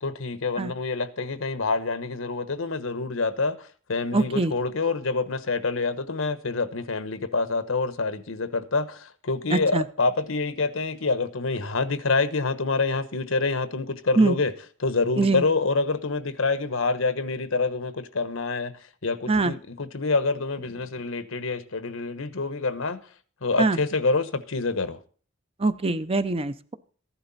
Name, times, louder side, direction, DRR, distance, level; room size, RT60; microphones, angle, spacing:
voice 1, 0.0-14.5 14.8-18.7 19.0-23.0 23.4-25.0, left 3 dB, 80° left, 1.1 m, -27 dB
voice 2, 4.1-4.5 9.5-9.8 14.2-14.3 15.2-15.4 19.3-19.5 23.6-23.8 25.6-26.7, right 3 dB, 30° right, 0.7 m, -23 dB
14.5 x 11.0 x 4.2 m
head